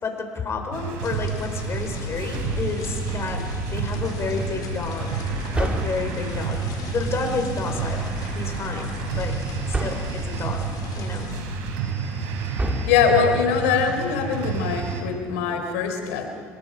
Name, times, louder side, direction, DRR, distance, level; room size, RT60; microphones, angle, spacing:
voice 1, 0.0-3.4 3.7-5.1 5.5-9.4 9.8-10.7 11.0-11.3, left 4 dB, 40° left, 4 dB, 5.4 m, -30 dB
sound 1, 0.7-15.0, right 5 dB, 80° right, 4.1 m, -30 dB
sound 2, 1.0-11.4, left 6 dB, 60° left, 4.0 m, -36 dB
sound 3, 2.3-3.0 5.5-6.4 9.7-10.3 12.6-13.4, right 2 dB, 15° right, 2.3 m, -29 dB
voice 2, 12.7-16.3, left 6 dB, 85° left, 5 dB, 3.9 m, -22 dB
27.0 x 22.0 x 5.5 m, 2.2 s
supercardioid pair, 80°, 7 cm